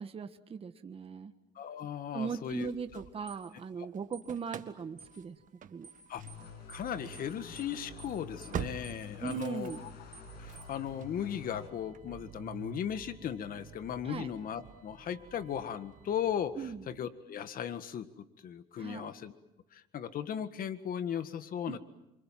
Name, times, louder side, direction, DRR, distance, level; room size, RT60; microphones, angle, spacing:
voice 1, 0.0-1.3 2.1-5.4 5.7-5.9 9.2-9.8 14.0-14.3 16.6-16.8 18.8-19.1 21.7-21.8, right 6 dB, 35° right, 8 dB, 1.4 m, -39 dB
voice 2, 1.5-3.0 6.1-6.2 6.7-9.9 10.4-19.3 19.7-21.8, left 9 dB, 55° left, 11 dB, 1.8 m, -37 dB
Engine starting / Slam, 2.3-3.7 3.9-17.0, right 9 dB, 50° right, 1.6 m, -48 dB
sound 1, 3.3-3.4 4.1-4.3 5.0-5.2 5.8-6.0 6.3-6.4 6.7-6.9 7.1-7.3 7.6-7.7 8.0-8.2 8.4-8.6 8.8-9.0 9.3-9.4 9.7-9.9 10.1-10.3 10.6-10.7, right 4 dB, 15° right, 6.7 m, -52 dB
sound 2, 6.2-11.7, left 4 dB, 75° left, 6.7 m, -48 dB
28.0 x 25.5 x 7.6 m, 0.90 s
cardioid pair, 110°, 17 cm